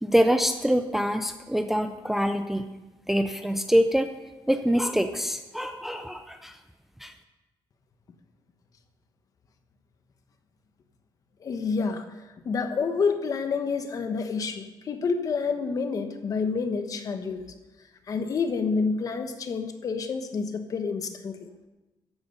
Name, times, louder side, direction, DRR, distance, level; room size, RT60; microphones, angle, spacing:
voice 1, 0.0-2.7 3.1-4.1 4.5-6.6 7.0-7.1, equal, 5° right, 7 dB, 0.5 m, -25 dB
voice 2, 11.4-12.0 12.4-17.4 18.1-21.5, left 5 dB, 40° left, 8 dB, 1.2 m, -28 dB
14.5 x 10.5 x 5.5 m, 1.1 s
wide cardioid pair, 175°, 9 cm